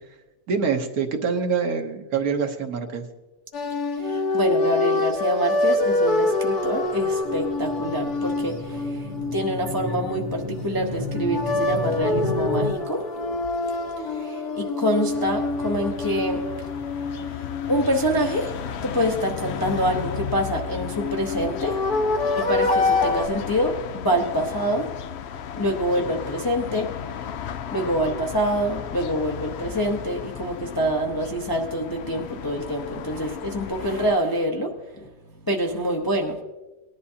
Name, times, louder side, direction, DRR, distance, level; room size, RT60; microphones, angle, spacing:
voice 1, 0.5-3.0, right 5 dB, 65° right, 5 dB, 1.4 m, -25 dB
sound 1, 3.5-10.6 11.1-18.9 20.6-23.3, left 2 dB, 65° left, 1.6 m, -26 dB
voice 2, 4.0-13.0 14.1-16.4 17.7-21.8 22.4-24.9 25.5-26.9 27.7-34.7 35.0-35.1 35.5-36.4, equal, 20° left, 1 dB, 0.7 m, -26 dB
sound 2, 6.3-12.7, left 1 dB, 35° right, 0.8 m, -33 dB
sound 3, 15.1-34.2, left 8 dB, 80° left, 0.5 m, -35 dB
19.0 x 11.0 x 2.8 m, 1.1 s
omnidirectional pair, 1.8 m